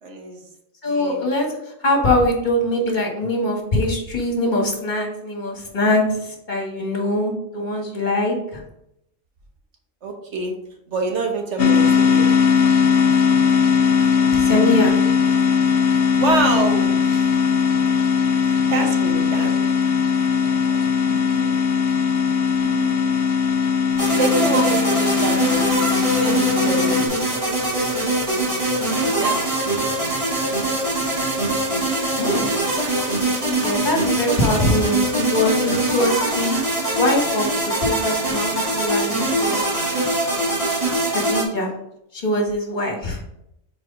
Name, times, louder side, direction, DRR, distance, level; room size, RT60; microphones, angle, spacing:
voice 1, 0.0-0.4 0.9-1.3 10.0-10.5 10.9-12.3 16.2-17.4 17.9-19.7 20.4-20.8 21.2-21.3 22.6-23.2 24.0-27.3 28.9-29.4 31.8-32.4 33.7-33.8, right 3 dB, 70° right, 2 dB, 1.3 m, -27 dB
voice 2, 0.8-8.6 14.3-15.0 21.0-21.5 32.2-32.5 33.4-36.6 37.0-37.5 37.8-39.6 41.1-41.7 42.1-43.2, left 1 dB, 40° left, -1 dB, 1.7 m, -22 dB
sound 1, 11.6-27.1, left 6 dB, 65° left, 0.9 m, -19 dB
sound 2, 24.0-41.4, right 1 dB, 25° right, 2.4 m, -22 dB
4.8 x 4.7 x 5.0 m, 0.81 s
omnidirectional pair, 1.3 m